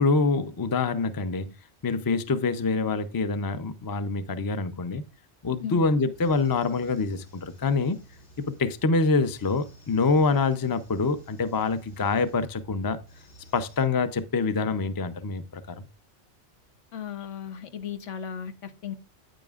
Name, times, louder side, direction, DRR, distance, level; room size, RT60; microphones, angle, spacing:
voice 1, 0.0-1.5 1.8-5.0 5.4-8.0 8.4-13.0 13.5-15.9, left 4 dB, 25° left, 0.4 m, -25 dB
sound 1, 5.4-13.8, right 1 dB, 70° left, 3.1 m, -52 dB
voice 2, 16.9-19.0, left 8 dB, 90° left, 1.2 m, -36 dB
9.0 x 8.9 x 2.4 m
omnidirectional pair, 1.2 m